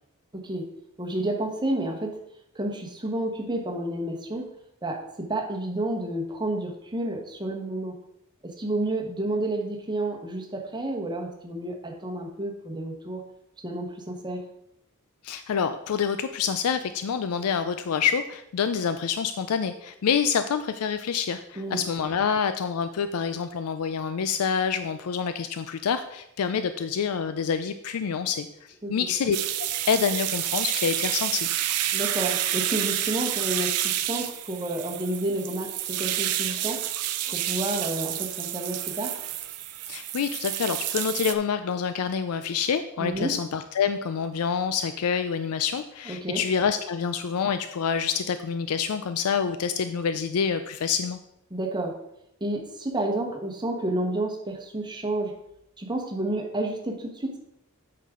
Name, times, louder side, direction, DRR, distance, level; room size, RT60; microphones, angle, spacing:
voice 1, 0.3-0.7 1.0-2.2 2.5-4.5 4.8-8.0 8.4-13.2 13.6-14.4 21.6-21.8 28.8-29.1 31.9-36.8 37.3-39.2 43.0-43.4 46.0-46.4 51.5-52.0 52.4-55.4 55.8-57.4, right 1 dB, 20° right, 1 dB, 1.2 m, -30 dB
voice 2, 15.2-29.4 29.9-31.5 39.9-51.2, left 6 dB, 75° left, 10 dB, 0.4 m, -27 dB
sound 1, 29.3-41.3, right 12 dB, 85° right, 0.6 m, -29 dB
8.3 x 5.8 x 3.7 m, 0.78 s
head